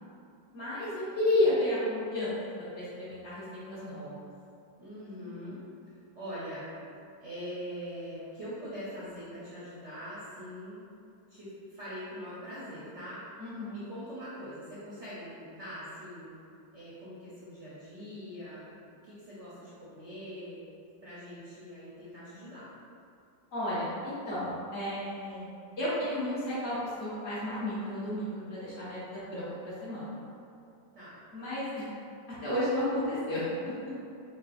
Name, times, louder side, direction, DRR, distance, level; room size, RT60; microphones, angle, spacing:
voice 1, 0.5-2.4 2.7-4.3 13.4-13.8 23.5-25.5 25.8-30.2 31.3-31.9 32.4-33.7, left 1 dB, 40° left, -10 dB, 1.1 m, -32 dB
voice 2, 4.8-5.6 6.1-6.6 7.2-10.8 11.3-13.2 13.7-16.3 16.7-18.6 19.0-20.6 21.0-22.7 30.9-31.2, equal, 60° right, -10 dB, 0.7 m, -42 dB
5.6 x 2.1 x 2.5 m, 2.5 s
omnidirectional pair, 2.1 m